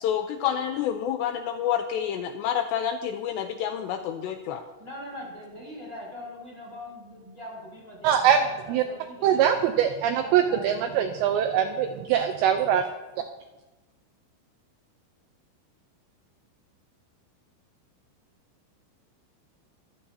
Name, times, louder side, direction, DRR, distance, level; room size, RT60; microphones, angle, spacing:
voice 1, 0.0-4.6, left 9 dB, 90° left, 6 dB, 2.4 m, -28 dB
voice 2, 4.8-9.5 10.0-11.5, left 1 dB, 15° left, -3 dB, 6.2 m, -42 dB
voice 3, 8.0-8.4 8.7-8.8 9.2-12.8, right 9 dB, 80° right, 6 dB, 2.6 m, -22 dB
24.5 x 14.5 x 2.8 m, 1.1 s
omnidirectional pair, 5.8 m